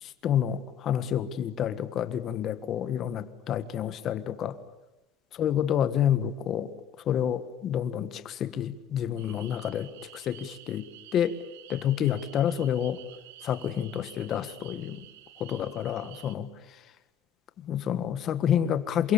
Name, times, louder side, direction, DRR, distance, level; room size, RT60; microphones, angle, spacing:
voice 1, 0.0-4.6 5.3-6.7 7.0-10.9 11.1-11.4 11.7-13.0 13.4-15.0 15.4-16.5 17.6-19.1, left 9 dB, 30° left, 12 dB, 1.6 m, -28 dB
sound 1, 9.2-16.4, right 13 dB, 80° right, 3.1 m, -50 dB
28.0 x 24.5 x 7.3 m, 1.0 s
supercardioid pair, 175°, 0 cm